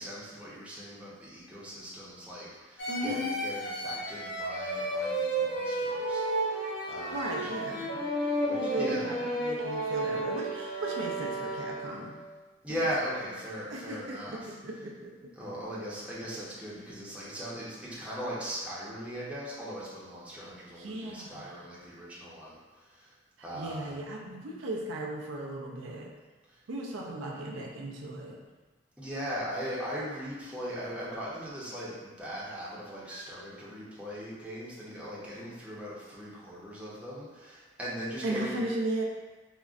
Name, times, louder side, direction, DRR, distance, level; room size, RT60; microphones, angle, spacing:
voice 1, 0.0-7.5 8.5-9.0 12.6-14.5 15.4-22.6 22.9-23.1 23.4-23.9 29.0-38.6, equal, 5° right, -8 dB, 0.6 m, -39 dB
sound 1, 2.8-12.1, right 1 dB, 70° left, 0.9 m, -32 dB
voice 2, 2.9-3.3 7.1-8.0 8.6-12.2 12.8-12.9 13.7-15.3 20.7-21.7 23.4-26.2 26.7-28.5 38.2-39.0, right 1 dB, 70° right, -2 dB, 0.4 m, -36 dB
3.6 x 2.1 x 2.4 m, 1.3 s
head